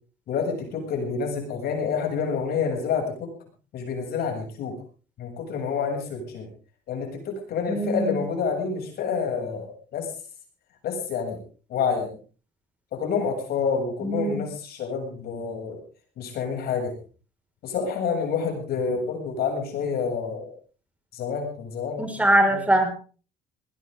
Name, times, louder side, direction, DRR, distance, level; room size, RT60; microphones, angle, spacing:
voice 1, 0.3-3.3 3.7-4.7 5.2-6.5 6.9-10.1 10.8-11.4 11.7-12.1 12.9-15.8 16.2-16.9 17.6-20.5 21.1-22.1 22.5-22.7, left 6 dB, 65° left, 2 dB, 7.5 m, -28 dB
voice 2, 7.7-8.2 14.0-14.4 22.0-22.9, right 1 dB, 10° right, 4 dB, 5.4 m, -22 dB
20.0 x 18.0 x 3.8 m, 0.40 s
cardioid pair, 110°, 17 cm